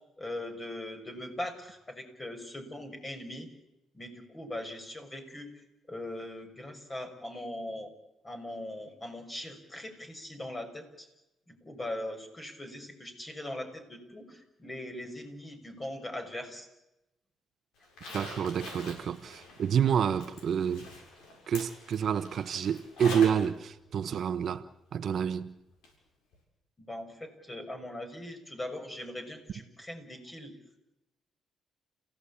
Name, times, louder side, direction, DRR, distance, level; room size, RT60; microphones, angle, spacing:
voice 1, 0.2-3.5 3.9-5.5 5.9-7.9 8.2-11.1 11.5-16.7 26.8-30.5, left 1 dB, 25° left, 6.0 m, -40 dB
Zipper (clothing), 17.8-23.5 23.8-23.9 25.8-25.9 26.3-26.4, left 2 dB, 85° left, 7.3 m, -44 dB
voice 2, 18.1-20.9 21.5-24.6 24.9-25.5, right 8 dB, 60° right, 1.1 m, -28 dB
30.0 x 16.5 x 8.6 m
cardioid pair, 90°, 0 cm